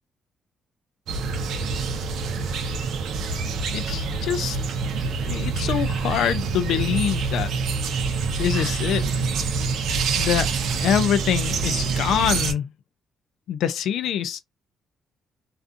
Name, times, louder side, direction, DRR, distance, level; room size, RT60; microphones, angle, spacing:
sound 1, 1.1-12.5, right 4 dB, 75° right, 0.5 m, -26 dB
voice 1, 3.7-4.6 5.2-7.5 8.4-9.0 10.2-10.5 10.8-12.6 13.5-14.4, left 9 dB, 80° left, 0.3 m, -24 dB
2.5 x 2.3 x 2.5 m
cardioid pair, 90°, 0 cm